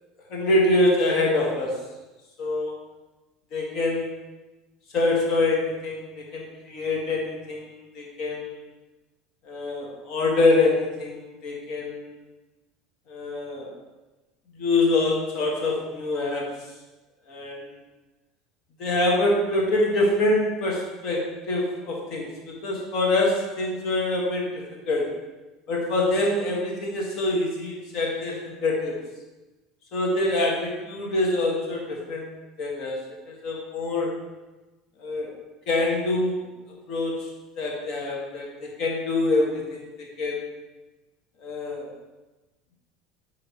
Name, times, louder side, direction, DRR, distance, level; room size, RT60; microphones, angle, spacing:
voice 1, 0.3-1.8 2.4-2.7 3.5-4.2 4.9-8.5 9.4-12.1 13.1-13.7 14.6-16.6 17.3-17.6 18.8-25.1 25.7-29.0 29.9-33.0 33.3-34.2 35.0-35.3 35.7-36.5 36.9-37.3 37.6-40.4 41.4-41.9, left 2 dB, 60° left, -1 dB, 1.7 m, -25 dB
8.7 x 3.8 x 3.1 m, 1.1 s
supercardioid pair, 95°, 0 cm